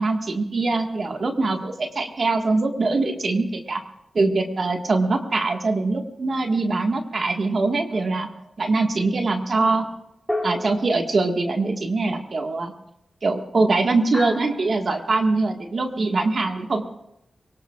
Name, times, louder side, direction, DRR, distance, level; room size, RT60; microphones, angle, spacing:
voice 1, 0.0-3.8 4.1-8.3 8.6-9.9 10.4-12.7 13.2-16.8, right 3 dB, 65° right, 4 dB, 1.7 m, -23 dB
sound 1, 7.9-8.5 10.3-11.6 14.1-15.0, left 1 dB, 5° left, 2.7 m, -33 dB
23.0 x 18.5 x 2.5 m, 0.80 s
cardioid pair, 50°, 0 cm